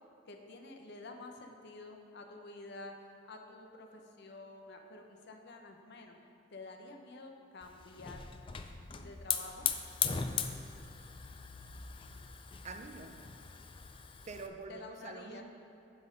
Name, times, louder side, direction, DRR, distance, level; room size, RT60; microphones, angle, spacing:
voice 1, 0.3-2.9 3.2-6.1 6.5-8.3 9.0-9.7 14.7-15.4, left 2 dB, 60° left, 4 dB, 0.7 m, -49 dB
Hiss / Fire, 7.6-14.5, left 7 dB, 25° left, 0.3 m, -39 dB
voice 2, 12.6-13.2 14.3-15.4, right 3 dB, 35° right, 6 dB, 0.5 m, -46 dB
9.3 x 4.2 x 5.2 m, 2.8 s
head